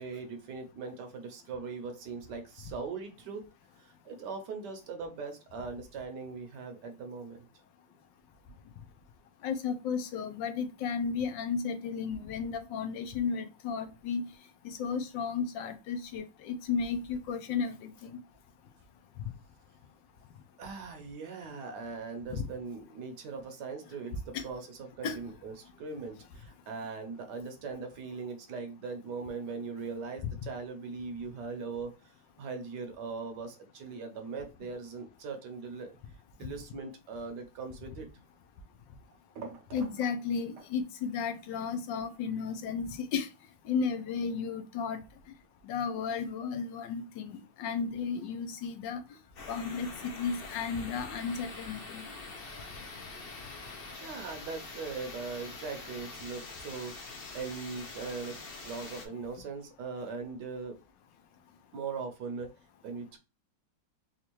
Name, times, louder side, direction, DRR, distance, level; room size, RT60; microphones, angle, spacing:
voice 1, 0.0-3.4 3.8-7.5 20.6-36.0 36.4-38.1 39.3-40.1 40.6-40.7 54.0-56.9 57.3-58.4 58.6-60.8 61.7-62.5 62.8-63.2, right 4 dB, 70° right, 1.2 m, -40 dB
voice 2, 9.4-14.2 14.6-18.1 19.2-19.3 22.3-22.5 24.3-24.4 25.0-25.2 39.7-43.3 43.7-45.0 45.6-49.0 49.5-52.0, left 6 dB, 80° left, 1.3 m, -34 dB
sound 1, 49.4-59.1, left 3 dB, 60° left, 0.6 m, -45 dB
4.3 x 2.4 x 2.9 m
omnidirectional pair, 2.1 m